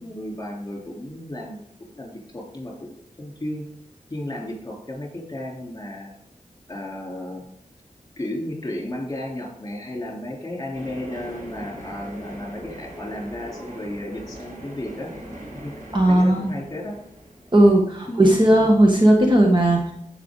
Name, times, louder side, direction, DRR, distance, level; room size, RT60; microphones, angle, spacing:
voice 1, 0.0-1.6 1.9-3.6 4.1-6.1 6.7-7.5 8.2-15.1 15.6-15.7 16.1-17.0 18.1-18.3, left 1 dB, 25° left, -1 dB, 3.6 m, -33 dB
sound 1, 10.7-18.4, right 1 dB, 85° right, 4.0 m, -40 dB
voice 2, 15.9-16.5 17.5-19.9, right 1 dB, 35° right, 0 dB, 1.6 m, -16 dB
14.0 x 5.7 x 3.9 m, 0.73 s
wide cardioid pair, 85°, 14 cm